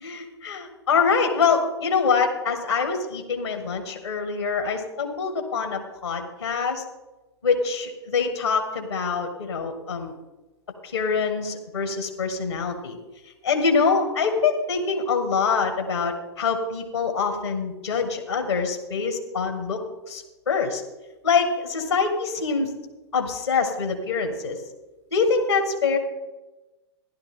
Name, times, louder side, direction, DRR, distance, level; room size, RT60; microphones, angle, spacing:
voice 1, 0.0-6.8 7.4-10.1 10.9-13.0 13.4-19.8 20.1-20.8 21.2-22.7 23.1-24.6 25.1-26.0, left 5 dB, 75° left, 5 dB, 1.9 m, -24 dB
15.5 x 11.0 x 3.8 m, 1.1 s
figure-of-eight pair, 100°, 14 cm